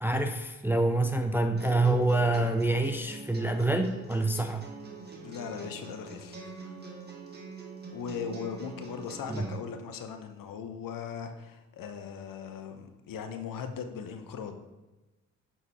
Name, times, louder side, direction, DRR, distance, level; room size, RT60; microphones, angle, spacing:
voice 1, 0.0-4.7 9.3-9.5, right 2 dB, 5° right, 6 dB, 0.4 m, -26 dB
sound 1, 1.6-9.6, right 4 dB, 25° right, 1.6 m, -44 dB
voice 2, 5.2-6.8 7.9-14.7, left 7 dB, 55° left, 7 dB, 0.9 m, -39 dB
7.3 x 3.9 x 4.2 m, 1.1 s
hypercardioid pair, 55°, 40 cm